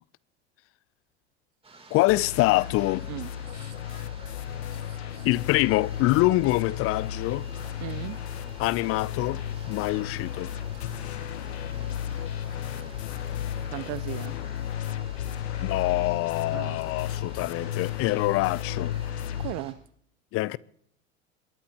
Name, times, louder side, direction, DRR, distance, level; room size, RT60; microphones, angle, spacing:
sound 1, 1.6-19.7, right 3 dB, 15° right, 3.2 m, -51 dB
voice 1, 1.9-3.1 5.2-7.5 8.6-9.4 9.7-10.5 15.6-18.9 20.3-20.6, left 19 dB, 45° left, 0.5 m, -25 dB
sound 2, 2.1-19.5, left 10 dB, 75° left, 1.0 m, -34 dB
voice 2, 4.9-5.3 7.8-8.2 13.7-14.3 16.5-16.8 19.4-19.8, right 18 dB, 55° right, 0.9 m, -37 dB
sound 3, 7.2-14.4, right 6 dB, 80° right, 5.4 m, -60 dB
21.5 x 20.5 x 2.9 m
hypercardioid pair, 80°, 33 cm